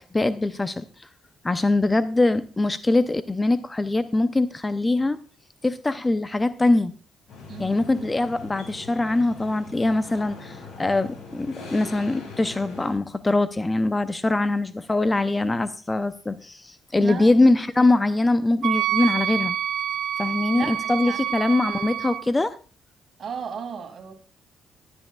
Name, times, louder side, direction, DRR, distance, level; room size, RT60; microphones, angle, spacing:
voice 1, 0.1-0.9 1.4-5.2 5.6-6.9 7.6-19.5 20.2-22.5, left 2 dB, 20° left, 12 dB, 0.6 m, -22 dB
sound 1, 7.3-12.9, left 3 dB, 70° left, 6.2 m, -41 dB
voice 2, 17.0-17.3 20.5-21.3 23.2-24.1, right 6 dB, 55° right, 6 dB, 2.4 m, -35 dB
Wind instrument woodwind instrument, 18.6-22.2, right 11 dB, 75° right, 0.6 m, -27 dB
19.0 x 9.7 x 2.3 m, 0.35 s
cardioid pair, 90°, 0 cm